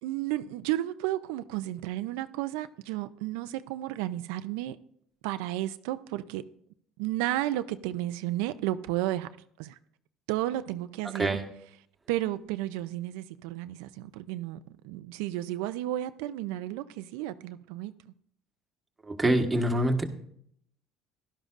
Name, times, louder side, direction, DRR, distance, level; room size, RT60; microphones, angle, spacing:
voice 1, 0.0-4.8 5.2-6.4 7.0-9.3 9.6-9.8 10.3-11.4 12.1-17.9, right 14 dB, 90° right, 0.4 m, -32 dB
voice 2, 19.0-20.0, right 1 dB, 15° right, 1.4 m, -25 dB
16.0 x 12.0 x 2.5 m
cardioid pair, 120°, 0 cm